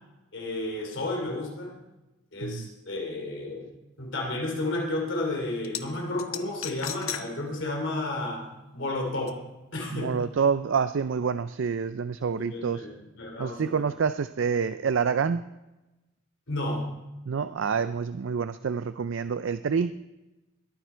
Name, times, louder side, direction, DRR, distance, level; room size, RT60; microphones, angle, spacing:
voice 1, 0.3-1.8 2.3-8.5 8.7-9.4 9.7-10.2 12.2-13.8 16.5-16.9, left 2 dB, 65° left, 0 dB, 3.1 m, -32 dB
sound 1, 5.6-5.8 6.2-7.3 7.6-7.7 9.3-9.4, left 10 dB, 90° left, 0.9 m, -34 dB
voice 2, 9.9-12.9 13.4-15.4 17.3-19.9, right 6 dB, 70° right, 12 dB, 0.4 m, -27 dB
21.5 x 9.4 x 4.5 m, 1.0 s
head